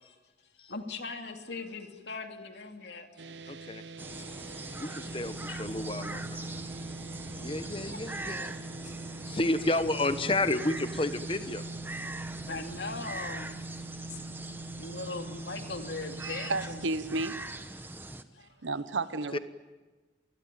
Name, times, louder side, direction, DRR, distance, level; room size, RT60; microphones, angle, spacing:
voice 1, 0.6-3.6 4.1-4.6 5.5-5.6 6.5-6.9 7.9-8.4 8.8-8.9 12.2-14.2 14.7-16.8 18.3-18.5, left 3 dB, 70° left, 2.7 m, -41 dB
sound 1, 3.2-16.9, right 2 dB, 75° right, 0.8 m, -43 dB
voice 2, 3.5-3.8 4.8-6.4 7.4-8.6 9.3-11.7 19.3-19.4, left 2 dB, 30° left, 1.1 m, -31 dB
sound 2, 4.0-18.2, right 2 dB, 10° right, 1.0 m, -42 dB
voice 3, 16.2-17.5 18.6-19.4, right 3 dB, 90° right, 1.1 m, -32 dB
27.5 x 20.5 x 9.2 m
head